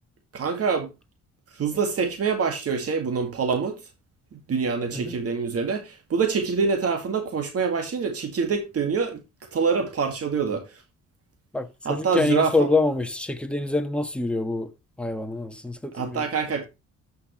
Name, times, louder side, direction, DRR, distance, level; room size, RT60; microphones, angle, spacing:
voice 1, 0.3-0.9 1.6-3.8 4.3-9.2 9.5-10.6 11.9-12.7 15.9-16.7, right 5 dB, 50° right, 2.0 m, -25 dB
voice 2, 11.5-14.7 15.0-16.3, left 2 dB, 5° left, 1.4 m, -26 dB
13.5 x 5.9 x 3.1 m
cardioid pair, 90°, 30 cm